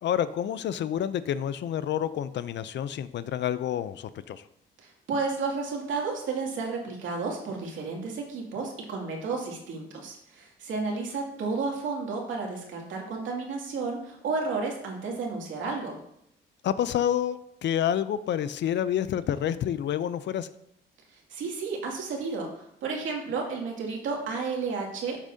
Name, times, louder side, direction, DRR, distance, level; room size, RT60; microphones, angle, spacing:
voice 1, 0.0-4.4 16.6-20.5, left 10 dB, 65° left, 15 dB, 0.6 m, -28 dB
voice 2, 4.8-16.0 21.1-25.2, right 4 dB, 75° right, -1 dB, 2.5 m, -32 dB
12.5 x 7.2 x 2.8 m, 0.76 s
cardioid pair, 90°, 20 cm